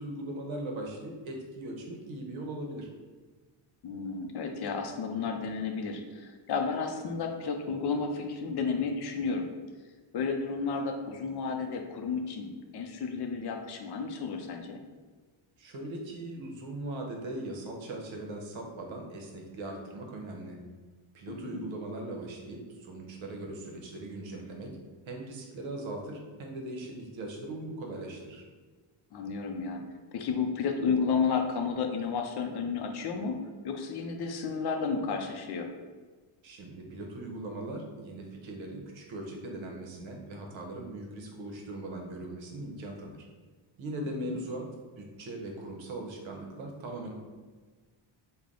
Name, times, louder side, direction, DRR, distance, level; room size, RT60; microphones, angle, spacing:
voice 1, 0.0-2.9 15.6-20.6 21.1-24.8 25.1-28.4 36.4-43.3 43.8-44.7 45.0-47.1, right 2 dB, 65° right, 1 dB, 0.9 m, -40 dB
voice 2, 3.8-9.5 10.1-14.8 21.3-21.7 29.1-29.8 30.1-35.7 44.2-44.4, left 5 dB, 55° left, 4 dB, 0.5 m, -32 dB
3.3 x 2.2 x 3.8 m, 1.4 s
cardioid pair, 110°, 49 cm